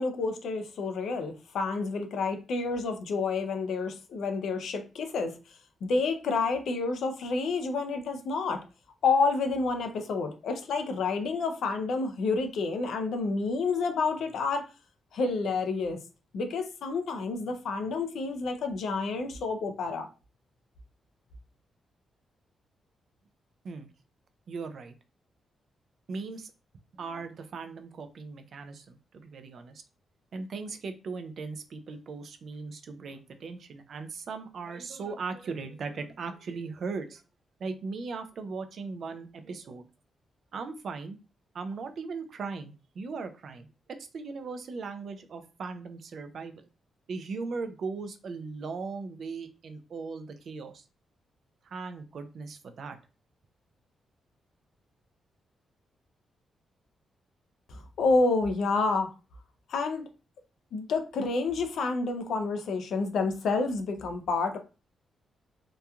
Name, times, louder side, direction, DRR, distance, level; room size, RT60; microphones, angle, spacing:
voice 1, 0.0-5.4 5.8-8.6 9.0-14.7 15.1-16.0 16.3-20.1 57.7-59.1 59.7-60.0 60.7-64.6, left 4 dB, 65° left, 6 dB, 0.4 m, -29 dB
voice 2, 24.5-24.9 26.1-26.5 26.9-29.8 30.3-37.2 37.6-39.9 40.5-41.2 41.5-46.7 47.1-50.8 51.6-53.0, right 4 dB, 45° right, 8 dB, 0.3 m, -38 dB
2.8 x 2.3 x 2.2 m, 0.33 s
wide cardioid pair, 180°, 0 cm